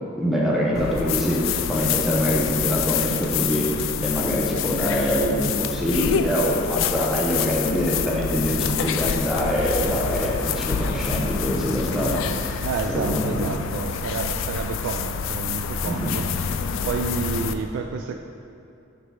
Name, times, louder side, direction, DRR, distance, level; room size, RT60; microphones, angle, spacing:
voice 1, 0.2-13.7 15.9-16.2, equal, ahead, -5 dB, 0.7 m, -24 dB
sound 1, 0.7-17.5, left 7 dB, 70° left, 0.3 m, -27 dB
voice 2, 12.6-16.2 16.8-18.2, right 5 dB, 70° right, 4 dB, 0.3 m, -29 dB
7.9 x 4.1 x 3.3 m, 2.6 s
head